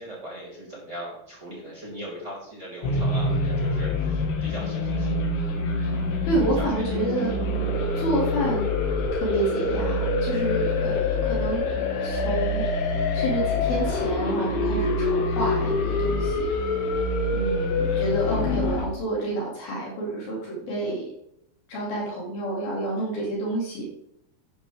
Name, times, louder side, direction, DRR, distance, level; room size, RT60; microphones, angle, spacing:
voice 1, 0.0-5.4 5.9-6.1 6.5-7.4 17.8-18.2, right 1 dB, 15° right, -6 dB, 4.9 m, -40 dB
sound 1, 2.8-18.9, left 3 dB, 85° left, 4.1 m, -25 dB
voice 2, 6.2-7.3 8.0-8.7 9.1-12.9 13.1-16.5 17.3-21.1 21.7-23.9, right 2 dB, 60° left, -3 dB, 4.1 m, -29 dB
11.5 x 10.5 x 3.5 m, 0.79 s
omnidirectional pair, 5.1 m